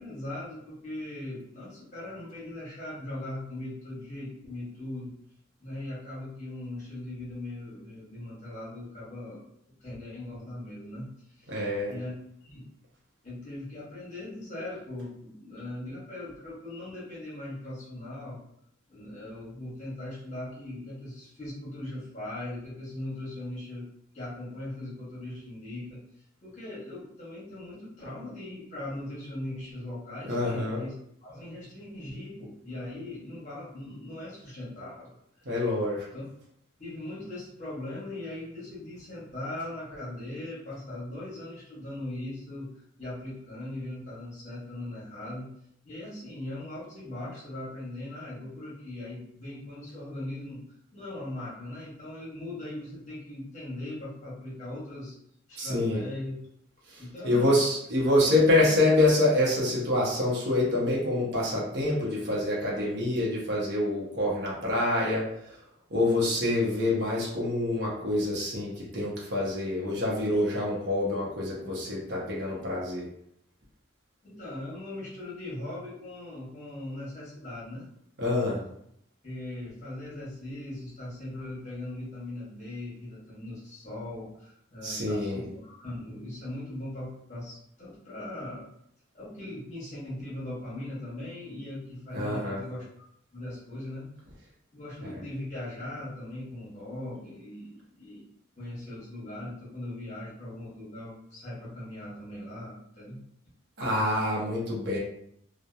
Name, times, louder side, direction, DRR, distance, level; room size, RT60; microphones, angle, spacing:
voice 1, 0.0-5.1 5.6-9.4 9.8-11.6 11.9-12.1 12.4-12.6 13.2-18.4 18.9-23.8 24.1-26.0 26.4-30.9 31.2-35.5 36.1-36.2 36.8-42.7 43.0-45.5 45.8-50.6 50.9-55.2 55.5-56.4 57.0-57.6 58.0-58.6 74.2-77.8 79.2-88.7 89.1-92.8 93.3-94.1 94.7-98.2 98.6-103.2, left 1 dB, 40° left, -6 dB, 1.0 m, -39 dB
voice 2, 11.5-11.9 30.3-30.8 35.4-36.0 55.6-56.0 56.9-65.6 65.9-73.1 78.2-78.6 84.8-85.4 92.1-92.6 95.0-95.2 103.8-105.0, left 1 dB, 60° right, -5 dB, 0.7 m, -26 dB
2.7 x 2.1 x 2.3 m, 0.73 s
head